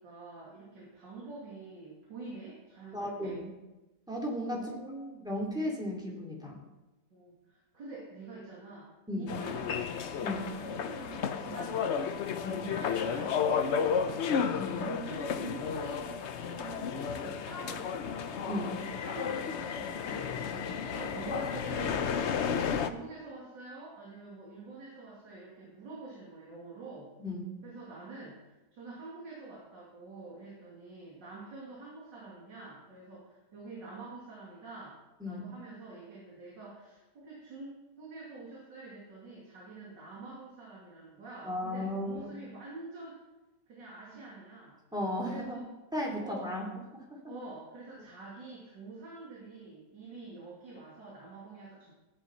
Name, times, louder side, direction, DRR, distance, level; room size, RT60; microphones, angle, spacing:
voice 1, 0.0-3.4 4.5-5.3 7.1-12.3 12.6-18.5 18.8-22.3 22.8-27.1 27.6-35.0 35.3-43.2 43.7-44.8 45.2-45.7 46.2-46.5 47.3-51.9, right 3 dB, 70° right, -5 dB, 3.3 m, -47 dB
voice 2, 2.9-3.5 4.1-4.7 5.2-6.6 9.1-9.3 10.2-10.5 12.4-12.7 14.6-14.8 18.4-18.8 20.5-20.8 27.2-27.5 35.2-35.5 41.4-42.3 44.9-45.6 45.9-46.7 47.1-47.2, left 1 dB, ahead, -3 dB, 2.5 m, -35 dB
sound 1, 9.3-22.9, left 6 dB, 65° left, 0.6 m, -33 dB
14.0 x 10.0 x 4.4 m, 1.1 s
omnidirectional pair, 2.0 m